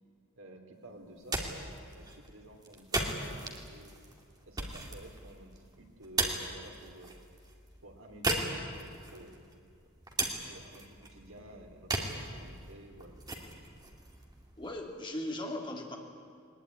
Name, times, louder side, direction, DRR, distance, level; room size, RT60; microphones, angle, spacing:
voice 1, 0.4-3.9 4.4-7.2 7.8-9.4 10.2-13.2, right 1 dB, 70° right, 2 dB, 3.3 m, -52 dB
sound 1, 1.0-15.0, right 2 dB, 20° right, 2.4 m, -38 dB
voice 2, 14.6-16.0, left 1 dB, 25° left, 1 dB, 2.9 m, -38 dB
20.5 x 20.5 x 9.8 m, 2.3 s
head